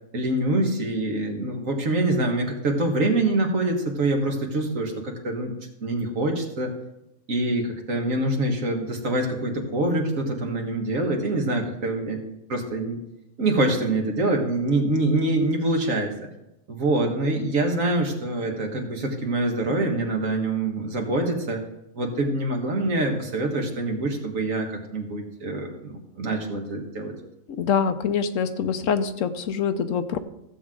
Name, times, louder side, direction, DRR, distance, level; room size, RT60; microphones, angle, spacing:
voice 1, 0.1-5.5 5.8-6.7 7.3-12.2 12.5-13.0 13.4-16.1 16.7-21.6 22.0-27.1, right 2 dB, 70° right, 2 dB, 2.0 m, -25 dB
voice 2, 27.5-30.2, left 7 dB, 70° left, 10 dB, 1.0 m, -25 dB
15.0 x 7.6 x 3.7 m, 0.86 s
omnidirectional pair, 1.4 m